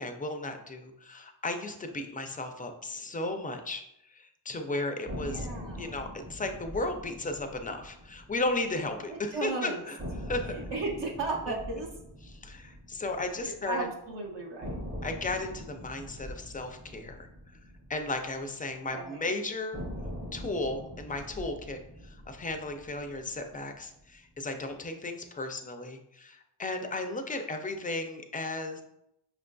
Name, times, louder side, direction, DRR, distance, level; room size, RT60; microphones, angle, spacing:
voice 1, 0.0-5.5 5.8-10.5 11.5-11.6 12.2-13.9 15.0-17.6 17.9-19.8 20.3-28.8, left 2 dB, 20° left, 6 dB, 0.3 m, -35 dB
big bangs, 5.1-9.2 9.4-9.5 10.0-14.1 14.6-19.0 19.7-24.1, equal, 25° right, 0.7 m, -43 dB
voice 2, 5.2-6.0 9.1-9.8 10.5-11.9 13.4-14.8 18.9-19.4, right 3 dB, 65° right, -1 dB, 0.7 m, -35 dB
5.5 x 2.5 x 2.2 m, 0.81 s
wide cardioid pair, 95°, 45 cm